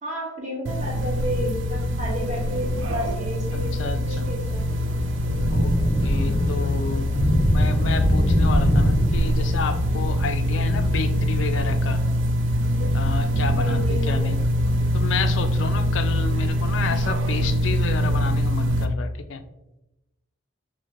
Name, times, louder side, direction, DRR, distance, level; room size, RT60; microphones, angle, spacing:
voice 1, 0.0-4.7 5.3-5.6 13.5-14.1, equal, 35° right, -3 dB, 1.2 m, -32 dB
sound 1, 0.7-18.9, equal, 70° right, 0.4 m, -24 dB
voice 2, 3.5-4.3 5.5-5.8 6.0-7.1 7.5-12.0 12.9-14.4 14.9-19.4, left 5 dB, 70° left, 9 dB, 0.3 m, -31 dB
Thunder / Rain, 4.4-16.8, equal, 10° left, 0.7 m, -25 dB
5.9 x 2.2 x 2.9 m, 0.97 s
head